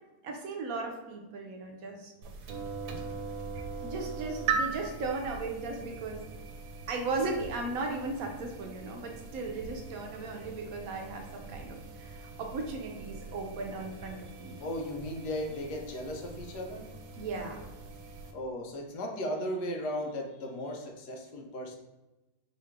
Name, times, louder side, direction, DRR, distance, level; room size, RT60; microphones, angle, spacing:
voice 1, 0.2-2.1 3.8-6.3 6.9-14.6 17.2-17.6, right 3 dB, 65° right, 1 dB, 1.1 m, -36 dB
sound 1, 2.2-18.3, right 5 dB, 80° right, 1.2 m, -40 dB
voice 2, 14.6-16.9 18.3-21.7, equal, 85° left, 1 dB, 1.4 m, -36 dB
4.7 x 3.1 x 3.5 m, 1.0 s
omnidirectional pair, 1.7 m